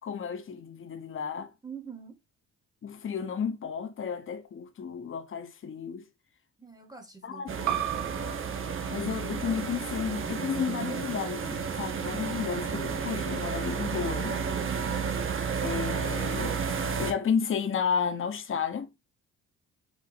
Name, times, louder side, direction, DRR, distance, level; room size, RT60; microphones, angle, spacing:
voice 1, 0.0-1.5 2.8-6.1 7.2-7.5 8.9-14.4 15.6-16.6 17.0-18.9, left 7 dB, 45° left, 0.9 m, -32 dB
voice 2, 1.6-2.2 6.6-7.8, right 6 dB, 15° right, 1.0 m, -44 dB
sound 1, 7.5-17.1, right 6 dB, 45° right, 0.9 m, -32 dB
sound 2, 7.7-12.8, right 12 dB, 85° right, 0.7 m, -38 dB
4.8 x 2.7 x 4.0 m
cardioid pair, 90°, 30 cm